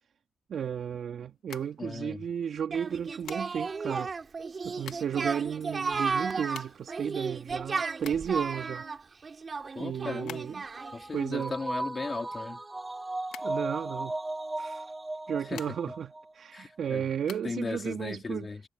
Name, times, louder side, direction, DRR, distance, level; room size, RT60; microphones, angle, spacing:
voice 1, 0.5-4.1 4.6-8.9 9.8-10.6 11.1-11.5 13.4-14.2 14.6-14.8 15.3-18.5, right 8 dB, 55° right, 2.8 m, -33 dB
sound 1, 1.3-2.4 3.2-3.8 4.5-5.3 5.6-5.7 5.9-8.5 8.9-10.8 11.1-12.9 13.3-14.3 15.1-16.1 16.5-17.4, left 10 dB, 80° left, 2.6 m, -47 dB
voice 2, 1.8-2.3 9.7-10.5 10.9-12.6 15.5-15.8 16.5-17.0 17.4-18.6, left 4 dB, 30° left, 3.1 m, -37 dB
Singing, 2.7-11.0, right 4 dB, 35° right, 4.4 m, -34 dB
sound 2, 9.6-16.2 16.6-16.7, right 2 dB, 15° right, 4.7 m, -37 dB
cardioid pair, 90°, 0 cm